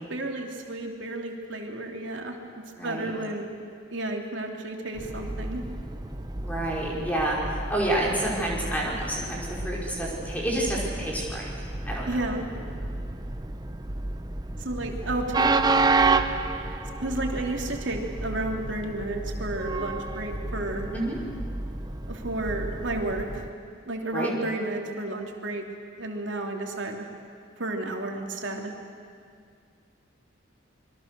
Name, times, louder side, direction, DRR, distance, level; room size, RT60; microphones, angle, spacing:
voice 1, 0.1-2.4 2.8-3.5 3.9-5.6 12.1-12.4 14.6-15.5 17.0-20.9 22.1-23.4 23.8-25.6 26.0-27.1 27.6-28.7, right 2 dB, 75° right, 2 dB, 2.9 m, -32 dB
voice 2, 2.8-3.1 6.3-11.5 11.8-12.1 20.9-21.2 24.1-24.3, right 1 dB, 10° left, -4 dB, 5.1 m, -29 dB
Train, 4.9-23.5, right 3 dB, 20° right, 0.8 m, -30 dB
27.0 x 22.5 x 6.8 m, 2.2 s
head